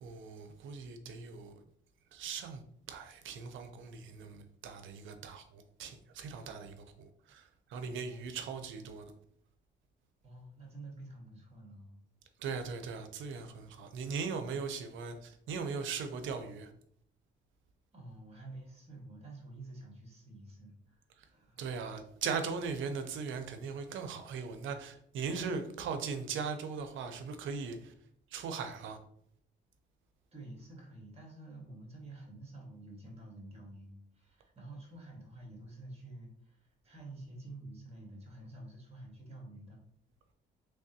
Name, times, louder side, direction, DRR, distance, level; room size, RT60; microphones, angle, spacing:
voice 1, 0.0-1.6 2.1-2.6 2.9-9.1 12.4-16.7 21.2-21.3 21.6-27.9 28.3-29.0, right 5 dB, 75° right, 0.6 m, -39 dB
voice 2, 10.2-12.0 17.9-21.7 30.3-39.8, right 2 dB, 30° right, 1.5 m, -49 dB
3.4 x 3.3 x 2.8 m
cardioid pair, 90°, 20 cm